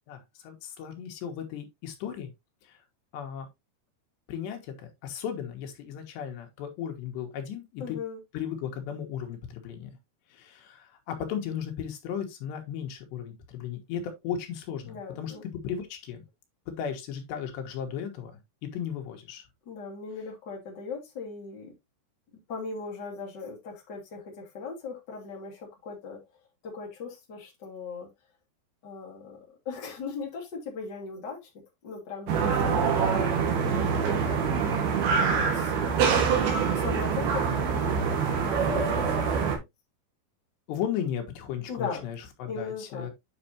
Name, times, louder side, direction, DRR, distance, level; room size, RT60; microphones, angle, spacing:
voice 1, 0.1-2.3 2.6-2.8 3.1-3.5 4.3-8.0 8.3-9.9 10.3-15.3 15.6-16.2 16.8-18.3 18.6-19.4 40.7-43.1, left 8 dB, 90° left, 3.7 m, -35 dB
voice 2, 7.8-8.2 14.9-15.4 19.7-21.7 22.5-26.2 26.6-28.1 28.8-29.4 29.6-31.5 31.8-34.8 35.1-35.7 36.7-39.6 41.7-42.1 42.5-43.1, left 5 dB, 30° left, 2.7 m, -39 dB
sound 1, 32.3-39.6, right 6 dB, 70° right, 3.6 m, -25 dB
9.4 x 5.5 x 2.9 m
omnidirectional pair, 4.8 m